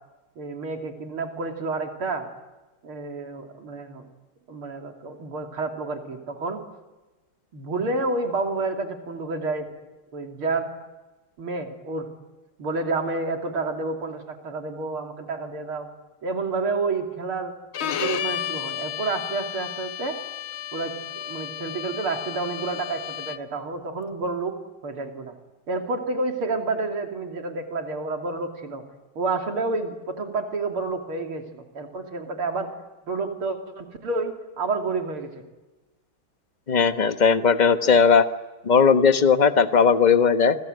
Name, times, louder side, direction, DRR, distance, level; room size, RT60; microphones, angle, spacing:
voice 1, 0.4-2.3 2.8-4.0 4.5-6.7 7.5-9.7 10.1-10.7 11.4-12.1 12.6-15.9 16.2-17.5 17.8-20.2 20.7-24.6 24.8-25.3 25.7-28.8 29.2-32.7 33.1-35.4, right 3 dB, 85° right, 4 dB, 3.8 m, -29 dB
Bowed string instrument, 17.7-23.6, left 10 dB, 75° left, 1.9 m, -33 dB
voice 2, 36.7-38.3 38.6-40.6, left 6 dB, 30° left, 9 dB, 0.9 m, -18 dB
28.5 x 25.5 x 8.0 m, 1.2 s
omnidirectional pair, 2.3 m